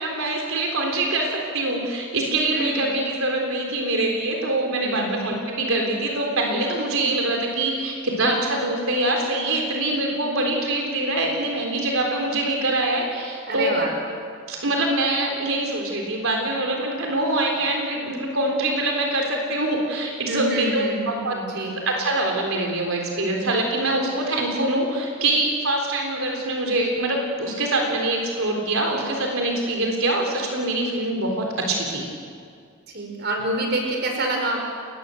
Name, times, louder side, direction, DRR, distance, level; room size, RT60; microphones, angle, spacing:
voice 1, 0.0-13.8 14.5-21.4 21.8-32.1, right 2 dB, 85° right, 1 dB, 3.9 m, -24 dB
voice 2, 4.8-5.1 13.5-13.9 20.2-21.8 32.9-34.6, right 2 dB, 50° right, 2 dB, 5.6 m, -27 dB
29.5 x 21.0 x 7.8 m, 2.2 s
head